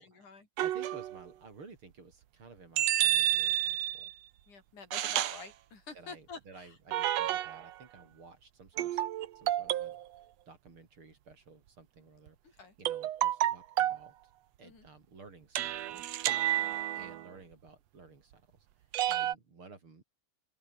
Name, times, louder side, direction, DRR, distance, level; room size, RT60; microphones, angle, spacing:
voice 1, 0.0-0.5 4.5-6.8 12.4-12.8 14.6-14.9 16.5-16.8 19.1-19.3, left 4 dB, 85° left, 7.1 m, -49 dB
voice 2, 0.6-4.1 5.9-9.0 9.3-10.0 10.5-14.1 14.6-16.2 16.9-20.0, right 4 dB, 45° right, 4.5 m, -54 dB
sound 1, 0.6-1.2 2.8-4.1 4.9-5.4 6.9-7.7 8.8-10.0 12.8-14.1 15.5-17.3 18.9-19.3, right 13 dB, 70° right, 2.1 m, -30 dB
open air
omnidirectional pair, 3.4 m